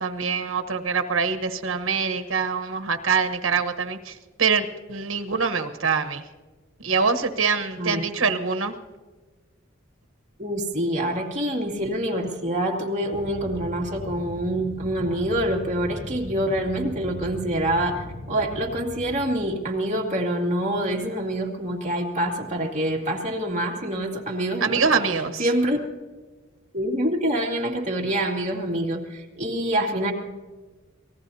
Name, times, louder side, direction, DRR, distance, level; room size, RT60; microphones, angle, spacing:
voice 1, 0.0-6.2 6.8-8.7 24.6-25.5, right 5 dB, 85° right, 8 dB, 1.2 m, -24 dB
voice 2, 10.4-24.8 25.4-25.8 26.7-30.1, right 1 dB, 35° right, 0 dB, 2.4 m, -26 dB
sound 1, 13.1-19.4, left 1 dB, 30° left, 2.6 m, -38 dB
26.5 x 19.0 x 2.8 m, 1.3 s
head